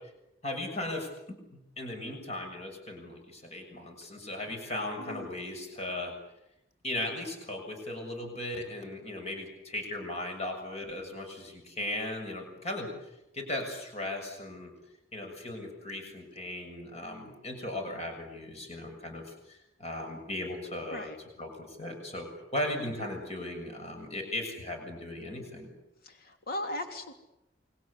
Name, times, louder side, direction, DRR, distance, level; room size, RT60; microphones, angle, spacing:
voice 1, 0.4-1.1 1.5-6.1 6.8-14.7 15.1-21.1 21.4-25.7, left 1 dB, 35° left, 3 dB, 6.9 m, -37 dB
voice 2, 26.0-27.1, left 1 dB, 55° left, 5 dB, 3.2 m, -38 dB
29.0 x 24.0 x 8.4 m, 0.86 s
head